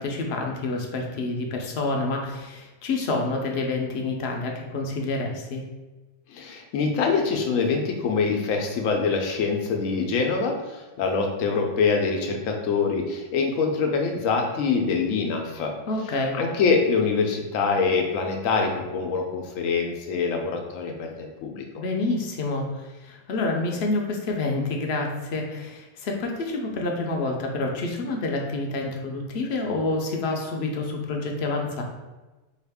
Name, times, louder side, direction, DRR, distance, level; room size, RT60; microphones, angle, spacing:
voice 1, 0.0-5.6 15.9-16.4 21.8-31.8, left 2 dB, 60° left, 2 dB, 0.8 m, -28 dB
voice 2, 6.3-15.7 16.3-21.6, left 4 dB, 90° left, 3 dB, 1.0 m, -24 dB
4.7 x 2.4 x 3.4 m, 1.1 s
omnidirectional pair, 1.3 m